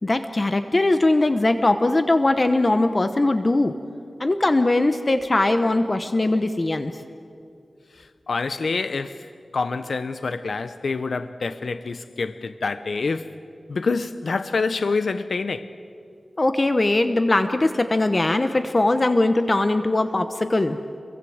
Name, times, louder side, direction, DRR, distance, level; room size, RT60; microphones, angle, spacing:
voice 1, 0.0-3.7 4.2-6.9 16.4-20.8, left 2 dB, 35° left, 1.0 m, -20 dB
voice 2, 8.0-9.3 9.5-13.4 13.7-15.7, left 4 dB, 75° left, 0.8 m, -27 dB
28.5 x 23.0 x 7.9 m
wide cardioid pair, 100°, 0 cm